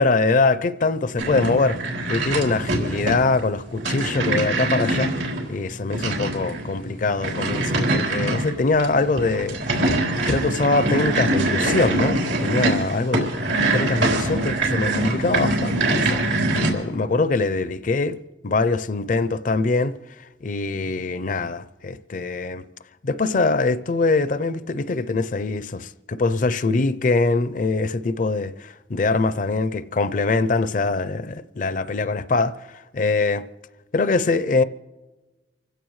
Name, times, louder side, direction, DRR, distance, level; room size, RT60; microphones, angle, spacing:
voice 1, 0.0-1.8 2.1-5.1 5.5-9.9 10.3-13.4 13.7-18.2 18.4-20.0 20.4-22.6 23.0-33.4 33.9-34.6, left 3 dB, 45° left, 0.5 m, -23 dB
sound 1, 1.2-16.7, right 2 dB, 85° right, 3.8 m, -24 dB
28.0 x 16.0 x 3.2 m
head